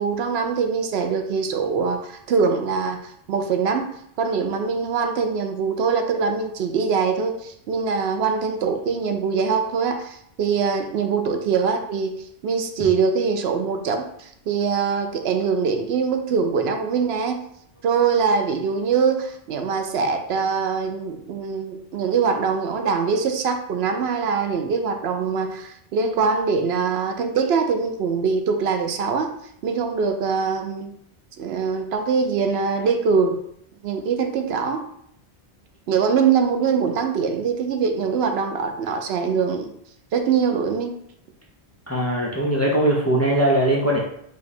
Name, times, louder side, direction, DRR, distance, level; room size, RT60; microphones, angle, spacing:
voice 1, 0.0-3.9 4.2-12.1 12.4-17.4 17.8-29.3 29.6-30.9 31.4-33.4 33.8-34.8 35.9-39.7 40.1-40.9, right 5 dB, 75° right, 6 dB, 0.8 m, -23 dB
voice 2, 41.9-44.0, right 1 dB, 15° left, -2 dB, 0.6 m, -20 dB
5.0 x 2.3 x 4.1 m, 0.70 s
omnidirectional pair, 1.1 m